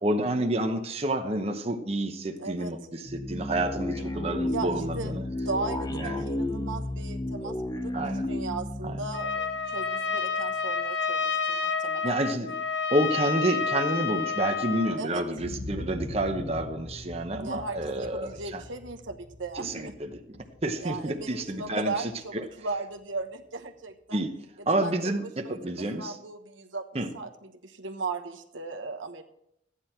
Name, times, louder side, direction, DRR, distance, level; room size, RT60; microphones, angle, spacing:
voice 1, 0.0-5.2 6.0-6.3 7.9-8.3 8.8-8.9 12.0-12.5 12.9-18.6 19.6-21.9 22.3-22.4 24.1-24.3 24.7-26.1 26.9-27.1, right 1 dB, 30° right, 5 dB, 0.9 m, -29 dB
voice 2, 2.4-2.7 4.5-5.2 5.4-7.9 8.3-9.4 9.7-12.2 15.0-15.2 17.4-19.9 20.8-24.2 24.6-26.8 27.1-29.2, right 3 dB, 90° right, 6 dB, 1.2 m, -37 dB
sound 1, 3.1-10.2, left 1 dB, 20° left, 0.7 m, -33 dB
Trumpet, 9.1-15.0, left 5 dB, 75° left, 1.1 m, -29 dB
sound 2, 15.3-23.2 23.7-23.8, left 1 dB, 55° left, 1.4 m, -43 dB
14.5 x 9.8 x 4.4 m, 0.76 s
head